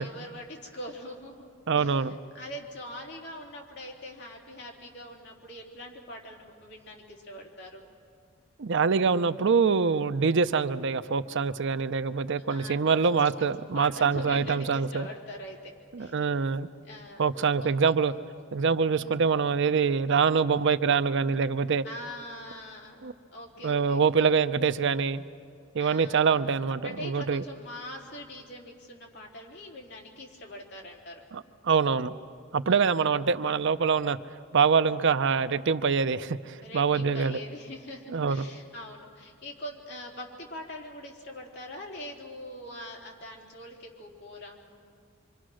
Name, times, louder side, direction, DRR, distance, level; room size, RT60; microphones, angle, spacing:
voice 1, 0.0-2.1 2.3-7.8 12.5-15.7 16.0-16.2 16.8-17.3 17.6-18.0 18.9-19.3 21.8-24.4 25.8-26.4 26.8-31.2 32.7-33.1 36.6-44.6, left 1 dB, 60° left, -1 dB, 3.8 m, -43 dB
voice 2, 1.7-2.1 8.6-15.1 15.9-16.7 17.2-18.1 18.5-21.8 23.0-23.1 23.6-25.2 25.7-27.4 31.3-32.1 32.5-34.2 34.5-37.4 38.1-38.4, right 5 dB, 65° right, 11 dB, 0.6 m, -25 dB
25.5 x 25.5 x 6.4 m, 2.2 s
head